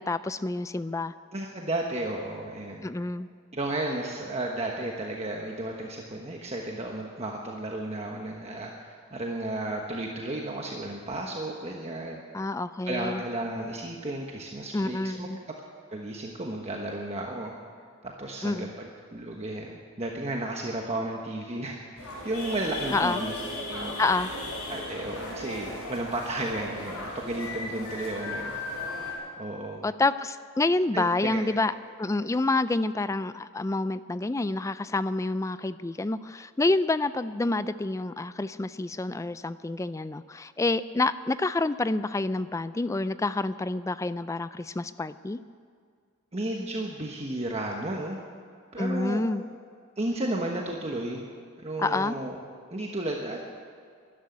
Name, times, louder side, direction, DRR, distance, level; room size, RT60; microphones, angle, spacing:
voice 1, 0.0-1.1 2.8-3.3 12.3-13.2 14.7-15.4 18.4-18.7 22.9-23.2 24.0-24.3 29.8-31.7 32.0-45.4 48.8-49.4 51.8-52.2, left 2 dB, 15° left, 14 dB, 0.3 m, -28 dB
voice 2, 1.3-2.9 3.5-12.2 12.9-15.3 15.9-17.5 18.2-18.9 19.1-23.3 23.7-24.0 24.7-28.5 29.4-29.8 30.9-31.4 46.3-48.2 48.7-49.2 50.0-51.2 51.6-52.4 52.7-53.4, right 1 dB, 30° right, 0 dB, 1.2 m, -33 dB
sound 1, 22.0-29.1, left 2 dB, 85° left, 5.2 m, -36 dB
13.0 x 12.0 x 9.6 m, 2.1 s
head